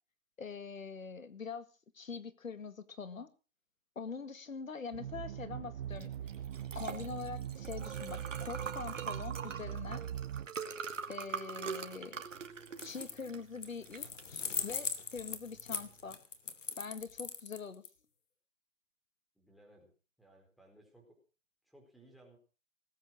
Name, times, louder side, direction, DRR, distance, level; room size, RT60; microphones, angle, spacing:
voice 1, 0.4-1.7 1.9-3.3 4.0-6.1 6.8-10.1 11.1-12.2 12.8-16.2 16.8-17.8, left 5 dB, 90° left, 12 dB, 1.9 m, -44 dB
sound 1, 4.9-10.5, right 10 dB, 50° right, 0.7 m, -41 dB
Liquid, 5.9-16.1, right 6 dB, 70° right, 2.7 m, -44 dB
sound 2, 12.7-13.3 13.6-17.9, left 6 dB, 70° left, 2.7 m, -39 dB
voice 2, 19.3-19.9 20.2-21.2 21.6-22.4, right 1 dB, ahead, 2 dB, 4.5 m, -61 dB
19.5 x 9.2 x 6.3 m, 0.36 s
hypercardioid pair, 145°, 39 cm